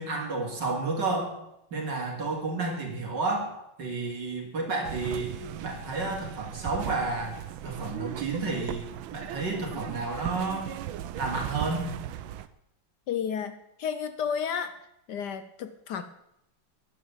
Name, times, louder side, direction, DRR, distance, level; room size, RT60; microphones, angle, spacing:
voice 1, 0.0-1.4 1.7-5.3 5.6-7.4 7.6-8.8 9.1-10.7 11.1-11.9, right 3 dB, 60° right, 0 dB, 3.4 m, -31 dB
sound 1, 4.8-12.5, right 12 dB, 80° right, 1.5 m, -38 dB
voice 2, 13.1-14.8 15.1-16.0, left 7 dB, 65° left, 11 dB, 1.2 m, -32 dB
10.5 x 10.0 x 7.3 m, 0.81 s
omnidirectional pair, 2.2 m